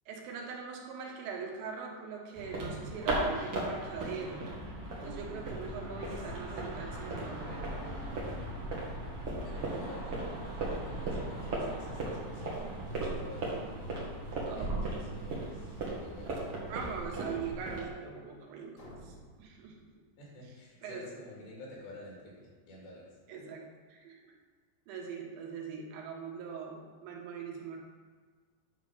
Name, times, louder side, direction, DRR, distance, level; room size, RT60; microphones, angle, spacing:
voice 1, 0.1-4.5 5.0-7.8 14.5-14.8 16.6-19.9 20.8-21.2 23.3-23.6 23.9-24.4 24.9-27.8, right 5 dB, 80° right, 0 dB, 3.4 m, -42 dB
sound 1, 2.3-17.9, right 2 dB, 60° right, 1.5 m, -37 dB
voice 2, 5.4-5.8 6.3-6.8 9.4-13.8 14.6-16.3 20.2-23.1, left 1 dB, 75° left, -4 dB, 4.4 m, -50 dB
sound 2, 18.7-20.6, equal, 30° left, 1.5 m, -54 dB
9.4 x 3.7 x 6.6 m, 1.5 s
omnidirectional pair, 5.2 m